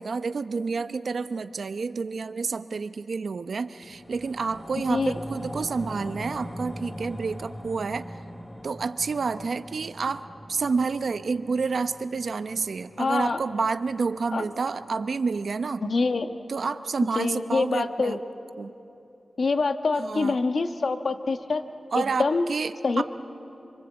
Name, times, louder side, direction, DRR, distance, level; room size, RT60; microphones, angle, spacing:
voice 1, 0.0-8.1 8.6-10.2 10.5-15.8 16.5-18.2 18.6-18.7 20.0-20.4 21.9-23.0, right 4 dB, 70° right, 11 dB, 0.8 m, -29 dB
sound 1, 3.8-14.4 14.8-14.9, equal, 15° left, 1.1 m, -41 dB
voice 2, 13.0-13.4 14.3-14.4 15.9-16.3 17.1-18.2 19.4-21.6 21.9-22.5 22.8-23.0, left 3 dB, 65° left, 7 dB, 1.3 m, -25 dB
26.0 x 25.0 x 8.1 m, 2.9 s
wide cardioid pair, 100°, 0 cm